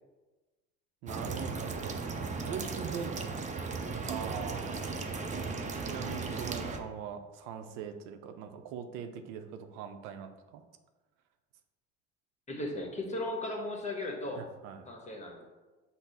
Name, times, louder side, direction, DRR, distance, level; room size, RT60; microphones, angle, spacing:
voice 1, 1.0-2.0 2.4-3.5 4.1-4.9 5.8-10.6 14.4-14.9, right 7 dB, 80° right, 8 dB, 0.5 m, -41 dB
sound 1, 1.1-6.8, right 4 dB, 25° right, 0.5 m, -36 dB
voice 2, 12.5-14.5 14.8-15.4, left 1 dB, 25° left, 2 dB, 1.0 m, -36 dB
5.8 x 2.0 x 4.0 m, 1.2 s
supercardioid pair, 80°, 29 cm